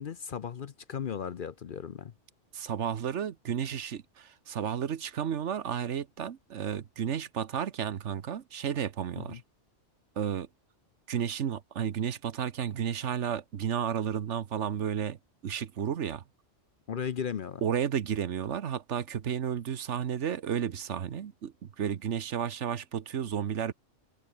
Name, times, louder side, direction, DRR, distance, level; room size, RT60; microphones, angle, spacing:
voice 1, 0.0-2.1 9.2-9.4 16.9-17.6, left 7 dB, 50° left, 0.8 m, -36 dB
voice 2, 2.5-9.4 10.2-10.5 11.1-15.2 15.4-16.2 17.6-23.7, right 8 dB, 70° right, 1.3 m, -32 dB
omnidirectional pair, 1.3 m